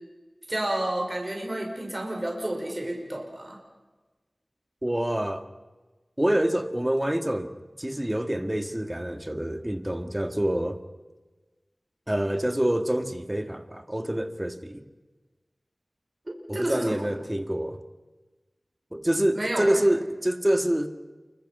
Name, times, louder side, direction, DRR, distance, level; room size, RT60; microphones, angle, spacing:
voice 1, 0.5-3.6 16.5-17.1 19.3-19.8, right 1 dB, 35° right, 5.3 m, -30 dB
voice 2, 4.8-5.5 6.2-7.5 7.8-10.8 12.1-14.8 16.5-17.8 18.9-20.9, right 1 dB, 15° right, 2.0 m, -26 dB
29.0 x 24.5 x 5.7 m
wide cardioid pair, 45°, 0 cm